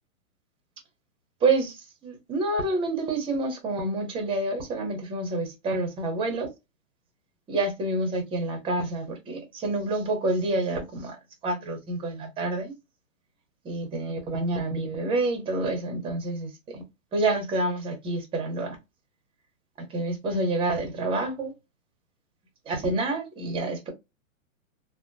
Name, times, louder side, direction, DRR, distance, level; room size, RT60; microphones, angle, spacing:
voice 1, 1.4-6.5 7.5-11.2 11.4-12.7 13.6-16.8 17.1-18.8 19.9-21.5 22.7-23.9, right 2 dB, 15° right, 0.7 m, -28 dB
2.7 x 2.1 x 2.5 m
hypercardioid pair, 140°, 42 cm